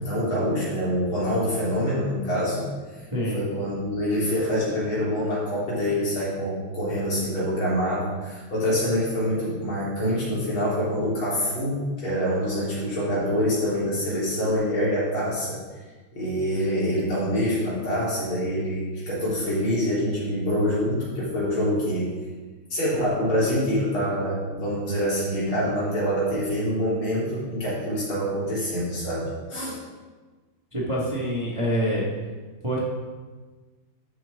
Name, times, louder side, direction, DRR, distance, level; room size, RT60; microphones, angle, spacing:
voice 1, 0.0-2.7 3.3-15.6 16.1-22.1 22.7-29.8, equal, 70° left, -7 dB, 4.3 m, -25 dB
voice 2, 30.7-32.1 32.6-32.8, equal, 15° right, -5 dB, 1.4 m, -26 dB
12.5 x 7.6 x 3.6 m, 1.3 s
omnidirectional pair, 2.4 m